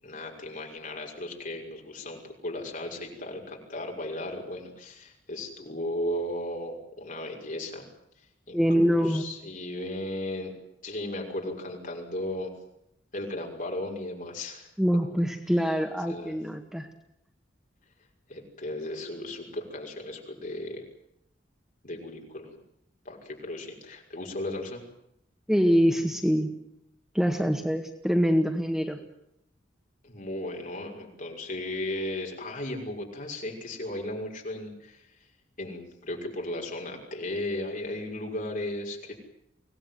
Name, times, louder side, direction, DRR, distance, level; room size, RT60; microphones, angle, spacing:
voice 1, 0.0-7.9 8.5-10.5 10.8-12.5 13.1-14.7 16.1-16.4 18.3-20.8 21.8-22.6 23.0-24.8 30.0-35.1 35.6-39.1, left 1 dB, 45° left, 0 dB, 5.9 m, -35 dB
voice 2, 8.5-9.2 14.8-16.9 25.5-26.6 27.1-29.0, equal, 5° right, 4 dB, 1.8 m, -24 dB
25.0 x 18.5 x 9.4 m, 0.77 s
head